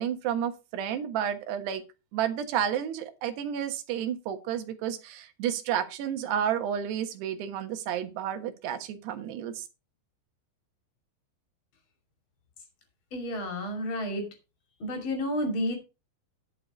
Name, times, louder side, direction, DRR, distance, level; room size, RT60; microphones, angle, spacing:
voice 1, 0.0-1.8 2.1-9.6, right 9 dB, 70° right, 8 dB, 3.3 m, -31 dB
voice 2, 13.1-14.3 14.8-15.7, left 1 dB, 35° left, 4 dB, 2.5 m, -30 dB
11.5 x 6.9 x 5.0 m, 0.29 s
omnidirectional pair, 5.2 m